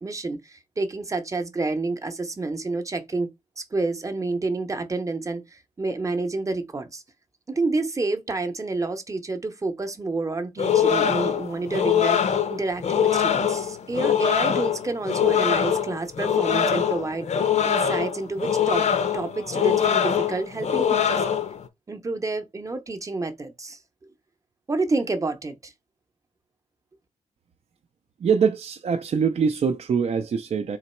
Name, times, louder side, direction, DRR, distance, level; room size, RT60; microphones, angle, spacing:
voice 1, 0.0-3.3 3.6-7.0 7.5-12.2 12.5-17.3 17.6-18.9 19.1-21.2 21.9-23.8 24.7-25.7, right 3 dB, 25° right, 0.8 m, -29 dB
sound 1, 10.6-21.7, left 8 dB, 60° left, 0.6 m, -23 dB
voice 2, 28.2-30.8, right 6 dB, 50° right, 0.5 m, -23 dB
3.9 x 3.0 x 4.3 m
wide cardioid pair, 110°, 13 cm